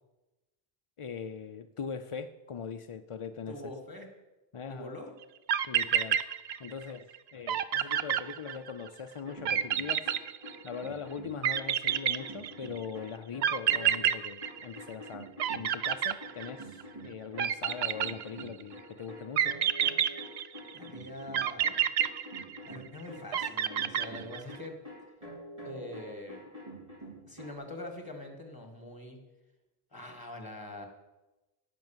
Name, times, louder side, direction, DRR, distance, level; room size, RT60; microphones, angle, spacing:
voice 1, 1.0-3.6 4.5-5.0 5.7-6.2 6.6-10.1 10.6-19.6, left 6 dB, 45° left, 8 dB, 0.4 m, -41 dB
voice 2, 3.5-4.1 4.7-5.1 20.7-21.8 22.7-24.8 25.6-26.4 27.3-29.2 29.9-30.9, left 1 dB, 20° left, 5 dB, 1.9 m, -44 dB
sound 1, 5.2-5.3 5.5-6.9 7.1-7.2 7.5-8.9 9.5-10.9 11.4-12.8 13.4-15.1 15.4-16.8 17.4-18.6 19.4-20.8 21.3-22.9 23.3-24.6, right 9 dB, 90° right, 0.9 m, -29 dB
sound 2, 9.2-14.1 14.4-27.5, equal, 35° right, 4.4 m, -47 dB
17.0 x 6.2 x 7.3 m, 1.1 s
omnidirectional pair, 1.0 m